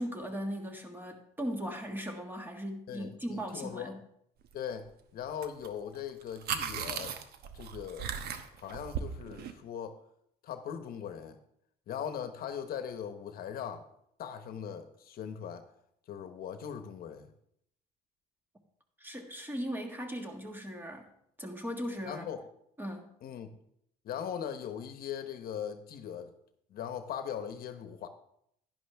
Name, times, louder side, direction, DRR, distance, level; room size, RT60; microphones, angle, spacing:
voice 1, 0.0-4.0 19.0-21.1 21.4-22.3 22.8-23.1, equal, 10° right, 1.7 m, -38 dB
voice 2, 2.9-4.0 4.5-7.2 7.5-8.1 8.6-10.0 10.4-11.4 11.9-13.9 14.2-15.6 16.1-17.3 22.1-22.4 23.2-23.6 24.0-26.3 26.7-28.1, left 8 dB, 60° left, 1.0 m, -40 dB
sound 1, 5.4-5.7 5.9-9.5, right 7 dB, 70° right, 1.0 m, -37 dB
11.0 x 11.0 x 3.5 m
cardioid pair, 110°, 17 cm